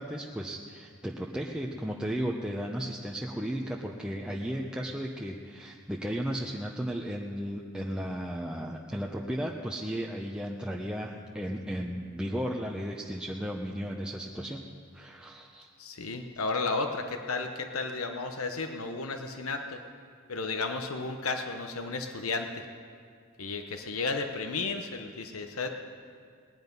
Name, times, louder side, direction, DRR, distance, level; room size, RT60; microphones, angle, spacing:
voice 1, 0.0-14.6 14.9-15.7, equal, 5° right, -2 dB, 0.7 m, -35 dB
voice 2, 15.8-19.8 20.3-22.7 23.4-25.7, left 3 dB, 90° left, 6 dB, 0.9 m, -33 dB
19.0 x 9.9 x 5.4 m, 2.1 s
head